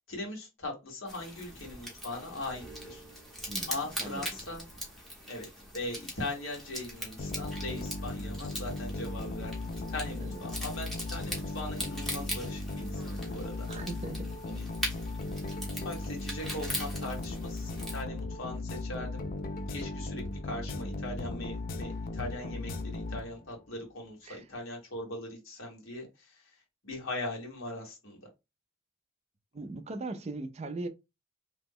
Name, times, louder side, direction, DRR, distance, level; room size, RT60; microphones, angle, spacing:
voice 1, 0.1-3.0 3.7-4.6 5.3-5.5 5.7-13.7 14.4-14.6 15.7-19.2 19.7-26.4 26.8-28.2, left 2 dB, 70° left, 1.4 m, -40 dB
sound 1, 1.1-18.0, equal, ahead, 0.8 m, -41 dB
sound 2, 7.2-23.6, left 2 dB, 45° left, 0.4 m, -37 dB
voice 2, 13.7-14.3 24.2-24.5 29.5-30.9, right 2 dB, 30° right, 0.4 m, -39 dB
2.9 x 2.1 x 3.5 m
head